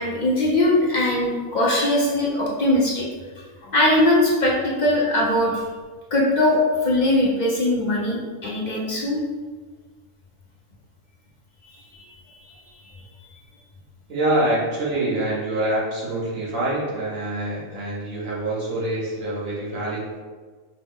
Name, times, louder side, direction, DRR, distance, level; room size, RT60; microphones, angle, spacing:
voice 1, 0.0-3.1 3.7-5.6 6.1-9.2, left 1 dB, 45° left, -4 dB, 0.6 m, -20 dB
voice 2, 14.1-20.2, right 1 dB, 70° right, -6 dB, 1.5 m, -25 dB
5.3 x 2.0 x 3.6 m, 1.4 s
omnidirectional pair, 1.4 m